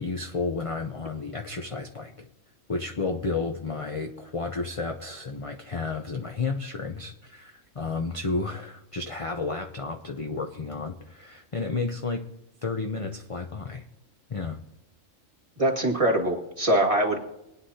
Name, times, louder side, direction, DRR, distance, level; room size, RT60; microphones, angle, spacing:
voice 1, 0.0-2.3 2.7-12.3 12.6-13.8 14.3-14.6, left 4 dB, 30° left, 4 dB, 0.7 m, -32 dB
voice 2, 15.6-17.2, right 1 dB, 25° right, -1 dB, 2.1 m, -23 dB
23.0 x 9.7 x 2.8 m, 0.88 s
omnidirectional pair, 1.3 m